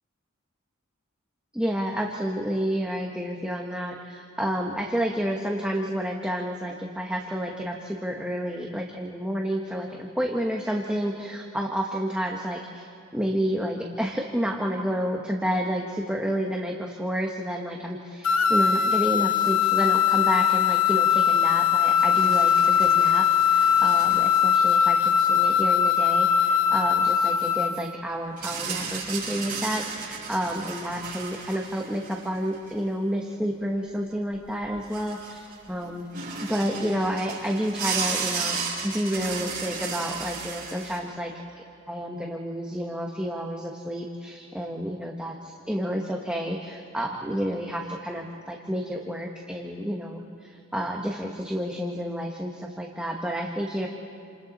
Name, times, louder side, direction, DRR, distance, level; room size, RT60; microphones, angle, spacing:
voice 1, 1.5-36.1 36.4-41.3 41.9-53.9, equal, 5° right, 0 dB, 1.2 m, -30 dB
sound 1, 18.2-27.8, left 8 dB, 85° left, 1.0 m, -21 dB
sound 2, 21.8-24.4 25.0-25.1 28.4-32.8 34.3-34.4 34.6-35.7 36.1-41.0, right 5 dB, 40° right, 7.0 m, -34 dB
29.0 x 27.5 x 4.1 m, 2.6 s
head